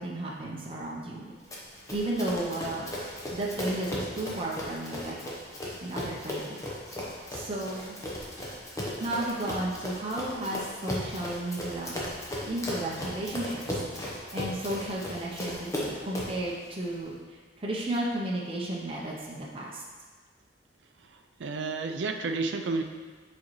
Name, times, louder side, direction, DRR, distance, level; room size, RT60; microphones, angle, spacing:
voice 1, 0.0-1.3 1.9-2.9 3.3-5.2 5.8-6.6 7.3-8.0 9.0-11.9 12.4-13.8 14.3-19.8, right 1 dB, 30° right, -4 dB, 0.7 m, -33 dB
Run, 1.5-16.4, left 1 dB, 20° left, 0.9 m, -36 dB
voice 2, 21.4-22.8, right 3 dB, 85° right, 6 dB, 0.5 m, -30 dB
7.3 x 4.2 x 3.1 m, 1.5 s
head